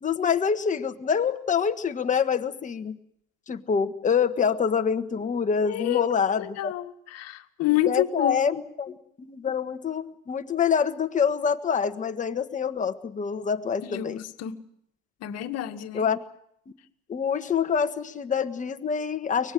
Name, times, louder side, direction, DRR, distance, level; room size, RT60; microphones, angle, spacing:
voice 1, 0.0-3.0 3.5-6.7 7.9-14.2 15.9-16.2 17.1-19.5, left 6 dB, 20° left, 1.5 m, -26 dB
voice 2, 5.6-6.1 6.4-8.4 13.8-14.6 15.2-16.1, left 13 dB, 45° left, 2.0 m, -29 dB
24.0 x 19.5 x 7.8 m
supercardioid pair, 125°, 35 cm